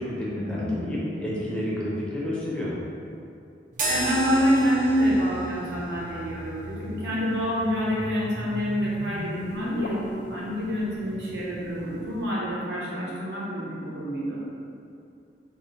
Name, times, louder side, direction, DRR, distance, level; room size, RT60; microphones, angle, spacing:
voice 1, 0.0-2.7, left 1 dB, 5° left, -7 dB, 0.7 m, -30 dB
voice 2, 0.5-0.9 1.2-1.4 3.9-14.4, equal, 70° right, -7 dB, 1.0 m, -27 dB
sound 1, 3.7-12.2, right 2 dB, 45° right, 0.5 m, -36 dB
sound 2, 3.9-9.9, left 2 dB, 55° left, 0.3 m, -39 dB
3.7 x 2.2 x 4.1 m, 2.5 s
head